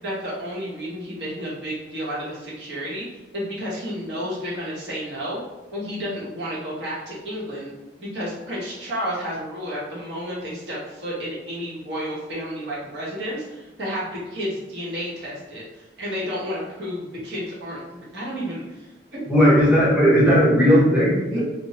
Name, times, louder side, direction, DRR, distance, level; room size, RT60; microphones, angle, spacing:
voice 1, 0.0-3.0 3.3-5.4 5.7-7.7 8.0-19.2 21.3-21.4, equal, 70° right, -6 dB, 0.9 m, -31 dB
voice 2, 19.3-21.4, equal, 5° right, -8 dB, 0.7 m, -16 dB
2.9 x 2.0 x 2.8 m, 1.1 s
head